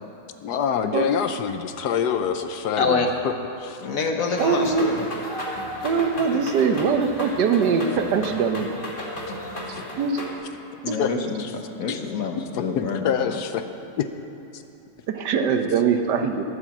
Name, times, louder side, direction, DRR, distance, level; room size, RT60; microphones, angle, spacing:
voice 1, 0.4-3.8 9.7-9.8 11.0-11.1 11.4-11.5 11.9-12.0 12.5-13.6 14.0-14.1 14.5-14.6, left 8 dB, 75° left, 8 dB, 1.2 m, -26 dB
voice 2, 2.8-3.1 3.8-5.0 10.8-13.4, left 4 dB, 55° left, 3 dB, 1.4 m, -26 dB
sound 1, 4.4-10.3, equal, 30° left, 1.8 m, -33 dB
voice 3, 4.4-4.9 5.8-8.7 10.0-10.2 10.9-11.0 15.1-16.4, right 6 dB, 75° right, 6 dB, 1.4 m, -22 dB
13.5 x 8.9 x 7.3 m, 2.9 s
omnidirectional pair, 1.8 m